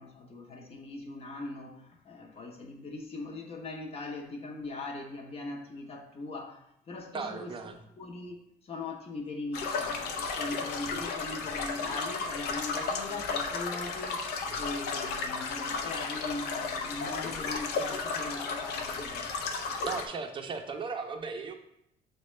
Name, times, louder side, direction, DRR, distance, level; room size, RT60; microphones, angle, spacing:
voice 1, 0.0-7.5 8.0-19.3, left 3 dB, 35° left, 2 dB, 0.7 m, -40 dB
voice 2, 7.1-7.8 19.8-21.5, right 5 dB, 30° right, 5 dB, 0.5 m, -36 dB
sound 1, 9.5-20.1, left 4 dB, 75° left, 0.5 m, -34 dB
6.1 x 2.2 x 3.1 m, 0.78 s
cardioid pair, 110°, 17 cm